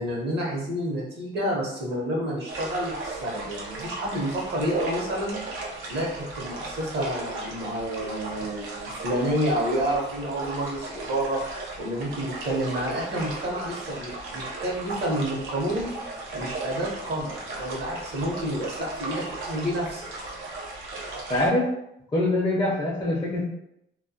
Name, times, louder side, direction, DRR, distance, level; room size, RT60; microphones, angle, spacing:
voice 1, 0.0-5.4 5.9-11.4 11.8-15.9 16.3-20.1, right 1 dB, 60° right, -3 dB, 0.8 m, -29 dB
sound 1, 2.5-21.5, right 2 dB, 85° right, 0.6 m, -37 dB
voice 2, 21.3-21.7 22.1-23.4, left 1 dB, 25° left, -4 dB, 0.5 m, -24 dB
2.2 x 2.2 x 2.7 m, 0.80 s
cardioid pair, 90°, 20 cm